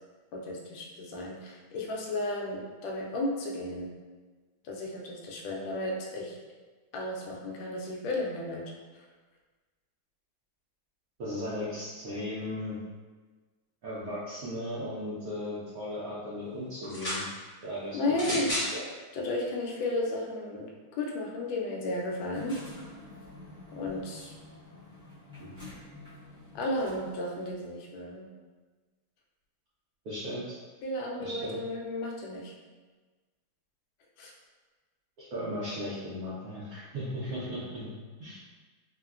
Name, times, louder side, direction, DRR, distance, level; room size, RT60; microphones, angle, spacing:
voice 1, 0.3-3.9 4.6-6.4 6.9-8.6 17.9-18.5 19.1-22.6 23.7-24.3 26.5-28.3 30.8-32.5 34.2-34.3, left 2 dB, 75° left, -2 dB, 1.2 m, -33 dB
voice 2, 11.2-12.8 13.8-17.2 17.6-18.0 18.3-18.8 25.4-25.5 30.0-30.5 31.2-31.5 35.2-37.9 38.2-38.4, left 1 dB, 75° right, -10 dB, 0.8 m, -36 dB
sound 1, 16.8-17.3 18.1-18.7 19.6-19.7, equal, 30° left, 1.0 m, -32 dB
sound 2, 22.3-27.6, left 2 dB, 5° right, 0.8 m, -49 dB
3.6 x 2.1 x 2.3 m, 1.3 s
omnidirectional pair, 2.3 m